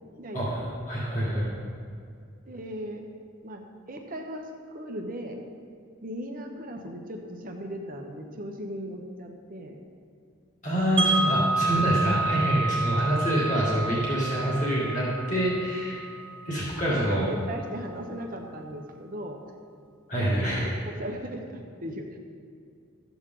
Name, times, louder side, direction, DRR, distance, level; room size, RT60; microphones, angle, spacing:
voice 1, 0.2-0.7 1.2-1.4 2.4-3.1 3.4-3.6 3.9-5.4 6.0-9.8 16.9-19.4 20.2-22.2, equal, 40° right, 2 dB, 1.0 m, -37 dB
voice 2, 0.9-1.5 10.6-16.0 16.5-17.2 20.1-20.7, equal, 35° left, -6 dB, 2.1 m, -26 dB
Wind chime, 11.0-17.0, right 3 dB, 25° right, 1.5 m, -29 dB
13.0 x 8.1 x 3.8 m, 2.3 s
head